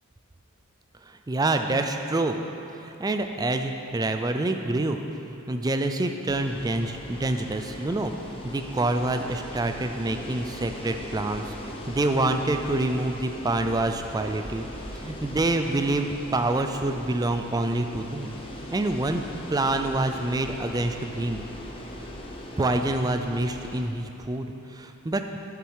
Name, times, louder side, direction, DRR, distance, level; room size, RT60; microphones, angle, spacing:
voice 1, 1.1-2.4 2.8-5.0 5.3-11.5 11.9-14.6 15.0-18.4 18.7-19.2 19.5-21.4 22.6-25.4, right 2 dB, 15° right, 6 dB, 0.4 m, -27 dB
sound 1, 6.3-23.8, left 1 dB, 25° left, 0.8 m, -40 dB
10.5 x 7.2 x 4.7 m, 2.9 s
head